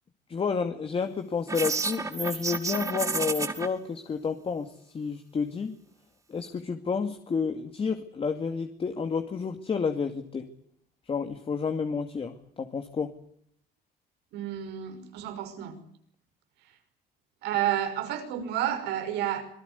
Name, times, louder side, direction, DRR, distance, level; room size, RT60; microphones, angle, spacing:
voice 1, 0.3-5.7 6.3-10.5 11.1-13.1, left 5 dB, 35° left, 7 dB, 2.3 m, -30 dB
sound 1, 1.5-3.7, right 4 dB, 20° right, 2.6 m, -30 dB
voice 2, 14.3-15.8 17.4-19.4, right 11 dB, 85° right, 8 dB, 5.6 m, -30 dB
26.5 x 19.0 x 8.3 m, 0.67 s
cardioid pair, 110°, 17 cm